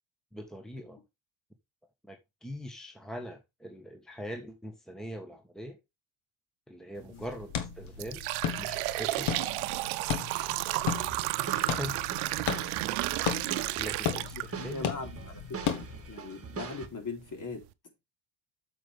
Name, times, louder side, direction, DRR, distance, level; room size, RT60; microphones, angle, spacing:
voice 1, 0.3-1.0 2.0-5.8 6.7-8.2 8.6-9.3 11.7-12.0 13.8-14.9, equal, ahead, 1.4 m, -42 dB
sound 1, 7.0-7.2 7.7-14.9 15.3-15.4 16.3-16.4 16.9-17.0 17.4-17.6, right 19 dB, 80° right, 0.7 m, -32 dB
sound 2, 7.1-16.1, left 8 dB, 80° left, 1.7 m, -36 dB
sound 3, 10.7-16.9, right 6 dB, 30° right, 1.7 m, -43 dB
voice 2, 14.1-17.6, left 4 dB, 40° left, 3.4 m, -41 dB
8.5 x 7.0 x 3.4 m
supercardioid pair, 80°, 48 cm